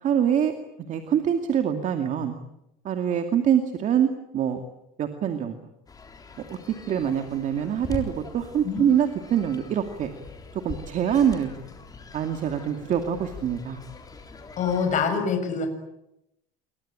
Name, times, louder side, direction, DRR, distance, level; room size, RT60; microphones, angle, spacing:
voice 1, 0.0-2.3 2.8-4.1 4.3-4.6 5.0-5.6 6.9-10.1 10.5-11.5 12.1-13.8, right 9 dB, 35° right, 6 dB, 2.4 m, -24 dB
sound 1, 5.9-15.0, left 4 dB, 15° left, 3.9 m, -42 dB
voice 2, 14.6-15.7, left 6 dB, 35° left, 5 dB, 6.9 m, -25 dB
28.0 x 24.0 x 8.9 m, 0.85 s
cardioid pair, 145°, 21 cm